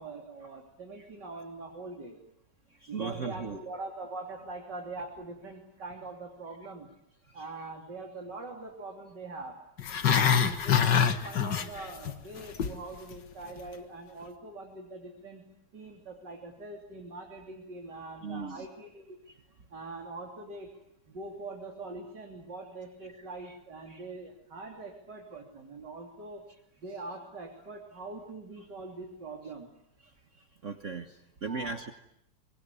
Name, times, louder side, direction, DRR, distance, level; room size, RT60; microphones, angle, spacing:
voice 1, 0.0-2.2 2.9-6.9 7.3-9.5 10.1-15.4 15.7-19.2 19.7-20.7 21.1-26.4 26.8-29.7 31.5-31.8, right 3 dB, 80° right, 2 dB, 3.9 m, -43 dB
voice 2, 2.9-3.6 18.2-18.7 23.9-24.0 30.6-31.1 31.4-31.9, right 4 dB, 45° right, 7 dB, 1.6 m, -36 dB
Growling, 9.8-12.1 12.4-12.8 13.1-13.2, left 7 dB, 85° left, 2.2 m, -25 dB
24.0 x 23.5 x 9.8 m, 0.76 s
omnidirectional pair, 1.8 m